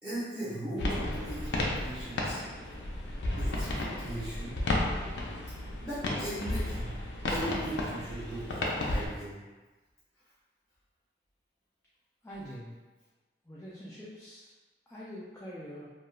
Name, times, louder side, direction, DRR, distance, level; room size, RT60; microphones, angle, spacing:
voice 1, 0.0-2.4 3.3-4.6 5.8-7.0 7.3-9.4, right 1 dB, 5° right, -14 dB, 1.0 m, -39 dB
sound 1, 0.8-9.1, left 1 dB, 75° left, 0.4 m, -33 dB
voice 2, 12.2-12.8 13.4-14.5 14.9-15.9, equal, 15° left, -8 dB, 0.3 m, -44 dB
3.0 x 2.3 x 2.2 m, 1.2 s
head